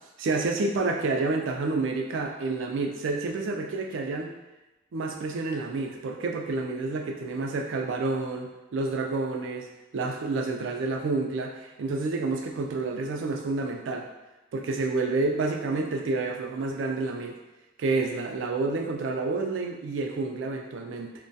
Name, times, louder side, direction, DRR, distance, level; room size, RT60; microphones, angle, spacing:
voice 1, 0.2-4.3 4.9-14.1 14.5-17.4 17.8-21.1, right 3 dB, 80° right, 3 dB, 0.3 m, -29 dB
2.2 x 2.1 x 2.6 m, 1.0 s
head